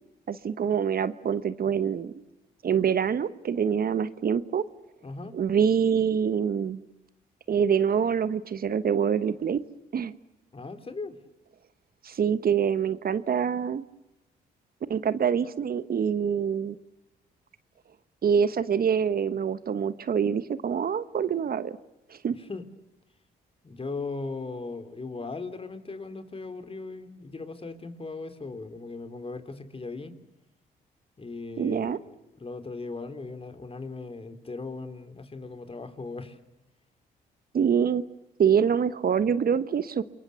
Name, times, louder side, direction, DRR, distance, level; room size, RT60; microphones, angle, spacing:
voice 1, 0.3-2.1 2.6-4.6 5.3-6.8 7.5-9.6 9.9-10.1 12.0-13.8 14.9-16.8 18.2-21.8 22.1-22.4 31.6-32.0 37.5-38.0 38.4-40.0, right 7 dB, 50° right, 14 dB, 1.2 m, -25 dB
voice 2, 5.0-5.3 10.5-11.2 22.5-22.6 23.6-30.1 31.2-36.4, left 3 dB, 30° left, 10 dB, 3.4 m, -38 dB
29.0 x 23.0 x 7.0 m, 0.96 s
supercardioid pair, 60°, 19 cm